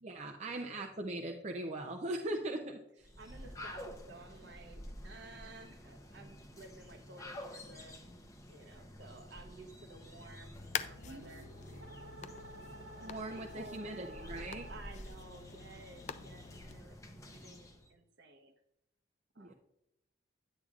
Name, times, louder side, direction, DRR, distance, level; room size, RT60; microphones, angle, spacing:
voice 1, 0.0-2.8 13.0-14.7 19.4-19.5, right 1 dB, 35° right, 1 dB, 0.6 m, -40 dB
voice 2, 2.9-8.0 8.5-11.8 12.9-18.5 19.3-19.5, right 2 dB, 60° right, 6 dB, 0.9 m, -54 dB
sound 1, 3.0-17.9, left 1 dB, 15° left, 0.7 m, -50 dB
sound 2, 10.6-16.8, left 8 dB, 35° left, 0.3 m, -46 dB
sound 3, 11.0-15.1, right 1 dB, 80° right, 1.3 m, -52 dB
9.7 x 8.4 x 2.4 m, 0.80 s
head